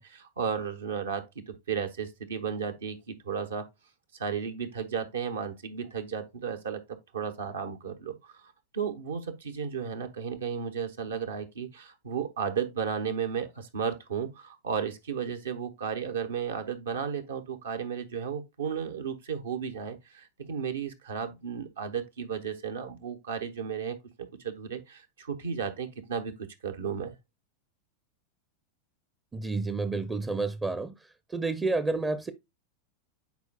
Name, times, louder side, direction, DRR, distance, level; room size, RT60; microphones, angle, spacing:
voice 1, 0.0-3.7 4.2-24.0 24.4-26.3 26.6-27.2, right 7 dB, 70° right, 1.0 m, -34 dB
voice 2, 29.3-30.9 31.3-32.3, right 3 dB, 15° right, 0.6 m, -29 dB
9.5 x 4.6 x 2.2 m
figure-of-eight pair, 90°, 0 cm